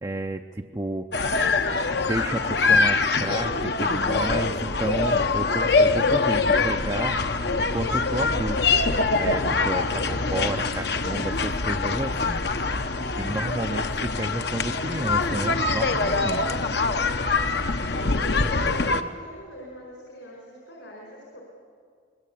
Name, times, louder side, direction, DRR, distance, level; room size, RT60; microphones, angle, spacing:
voice 1, 0.0-1.1 2.0-7.2 7.6-8.6 9.2-12.4 13.2-16.5, right 2 dB, 20° right, 4 dB, 0.5 m, -31 dB
sound 1, 1.1-19.0, left 3 dB, 60° left, 1.0 m, -24 dB
voice 2, 18.2-21.4, equal, 75° left, -2 dB, 4.7 m, -42 dB
25.0 x 20.0 x 8.5 m, 2.1 s
head